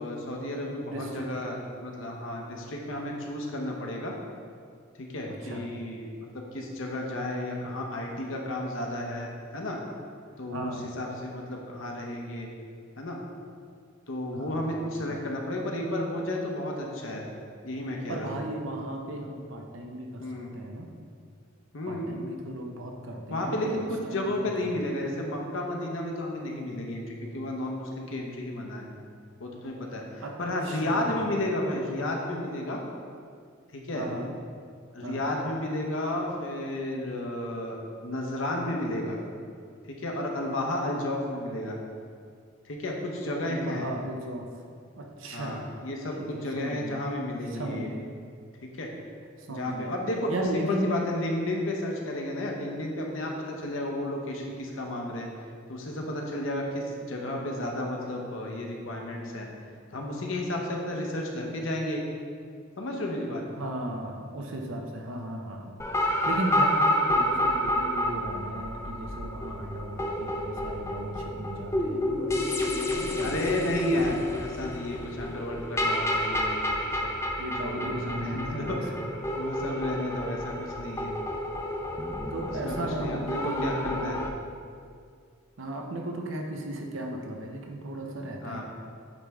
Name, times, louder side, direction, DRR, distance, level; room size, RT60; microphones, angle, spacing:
voice 1, 0.0-4.1 5.1-6.1 6.5-9.8 10.4-12.5 13.0-13.2 14.1-17.2 17.6-18.4 20.2-20.5 21.7-22.1 23.3-28.9 29.4-32.8 33.7-34.1 34.9-37.8 38.0-39.2 39.9-41.8 42.6-43.9 45.3-47.9 48.7-48.9 49.5-55.3 55.7-59.5 59.9-62.0 62.8-63.4 73.2-77.1 77.6-79.0 79.4-81.1 82.4-84.2 88.4-88.6, left 1 dB, 75° left, 0 dB, 0.9 m, -32 dB
voice 2, 0.9-1.3 5.3-5.7 10.5-10.9 14.3-15.2 18.1-20.9 21.9-23.8 24.0-24.8 30.2-30.3 30.6-31.2 33.9-34.3 35.0-35.2 43.4-44.5 45.0-45.6 46.2-47.0 47.5-48.1 49.5-49.9 50.3-51.0 63.6-65.8 66.2-73.5 73.9-74.4 77.4-78.8 82.3-84.2 85.6-88.6, right 1 dB, 80° right, 2 dB, 0.7 m, -36 dB
sound 1, 65.8-84.3, left 1 dB, 15° left, 0.4 m, -30 dB
8.8 x 3.3 x 3.5 m, 2.2 s
head